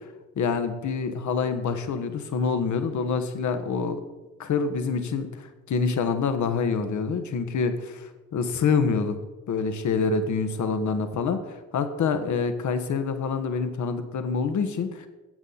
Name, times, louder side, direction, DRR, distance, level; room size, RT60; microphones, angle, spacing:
voice 1, 0.4-4.0 4.4-9.2 9.5-11.4 11.7-15.1, left 5 dB, 45° left, 9 dB, 1.4 m, -26 dB
13.5 x 8.2 x 4.0 m, 1.2 s
hypercardioid pair, 65°, 40 cm